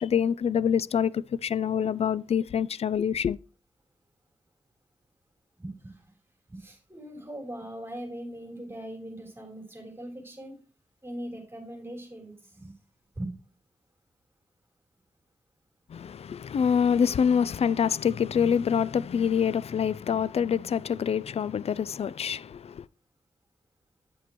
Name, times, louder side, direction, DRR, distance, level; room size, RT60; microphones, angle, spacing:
voice 1, 0.0-3.4 15.9-22.9, left 7 dB, 55° left, 0.4 m, -26 dB
voice 2, 5.6-6.1 6.5-10.6 11.0-12.7 13.2-13.3, right 1 dB, 20° right, 3.5 m, -40 dB
8.3 x 8.2 x 3.0 m
cardioid pair, 50°, 12 cm